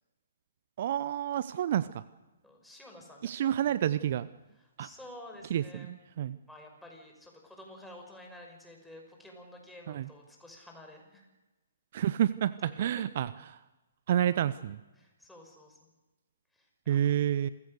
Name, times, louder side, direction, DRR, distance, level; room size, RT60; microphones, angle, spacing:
voice 1, 0.8-2.0 3.2-4.3 4.8-4.9 5.5-6.4 9.9-10.1 11.9-13.6 14.1-14.8 16.9-17.5, right 10 dB, 50° right, 16 dB, 0.7 m, -29 dB
voice 2, 2.4-3.9 4.8-5.9 6.5-11.3 12.6-13.0 15.0-15.9 16.5-17.0, left 1 dB, 5° left, 1 dB, 5.5 m, -51 dB
28.0 x 16.0 x 6.6 m, 1.1 s
figure-of-eight pair, 130°, 0 cm